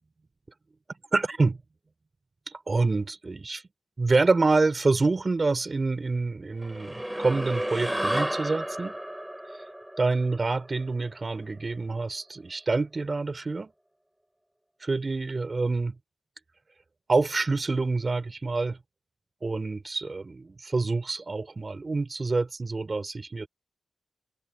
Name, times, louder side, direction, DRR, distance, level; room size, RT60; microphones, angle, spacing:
voice 1, 1.1-1.6 2.7-3.6 4.0-9.0 9.5-9.6 10.0-13.7 14.8-15.9 17.1-18.8 19.4-23.5, right 3 dB, 30° right, 6.0 m, -27 dB
sound 1, 6.6-11.3, right 1 dB, 5° right, 4.1 m, -32 dB
open air
wide cardioid pair, 125°, 0 cm